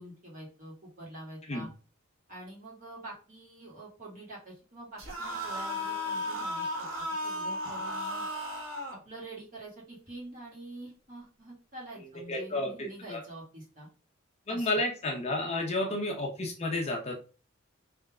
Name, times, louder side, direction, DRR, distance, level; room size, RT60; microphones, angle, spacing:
voice 1, 0.0-1.7 2.3-8.3 8.9-13.9 14.5-14.7 15.8-16.0, right 1 dB, 40° right, -5 dB, 2.2 m, -46 dB
sound 1, 5.0-9.0, left 1 dB, 75° right, 1.3 m, -34 dB
voice 2, 12.0-13.2 14.5-17.3, left 2 dB, 30° left, 1 dB, 0.8 m, -32 dB
3.5 x 3.3 x 3.6 m, 0.36 s
head